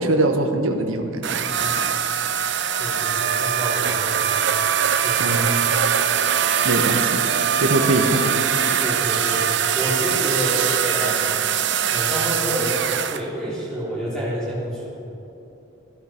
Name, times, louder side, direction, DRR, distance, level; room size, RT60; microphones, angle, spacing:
voice 1, 0.0-1.3 5.2-5.7 6.6-7.2 7.6-8.4, right 2 dB, 80° right, 4 dB, 1.1 m, -22 dB
sound 1, 1.2-13.2, right 8 dB, 55° right, 0.6 m, -22 dB
voice 2, 1.4-1.8 2.8-5.3 8.8-9.4 9.7-11.2 11.9-14.9, equal, 5° left, -8 dB, 3.7 m, -29 dB
14.5 x 14.0 x 4.4 m, 3.0 s
head